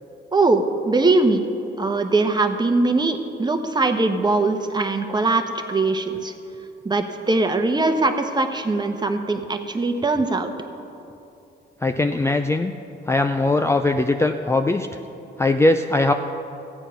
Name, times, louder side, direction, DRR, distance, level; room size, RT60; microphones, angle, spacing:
voice 1, 0.3-1.4 1.8-5.4 5.7-6.3 6.8-10.5, right 3 dB, 20° right, 7 dB, 1.0 m, -21 dB
voice 2, 11.8-12.7 13.1-14.9 15.4-16.1, left 2 dB, 15° left, 6 dB, 0.4 m, -20 dB
14.0 x 9.0 x 5.6 m, 2.7 s
cardioid pair, 90°, 20 cm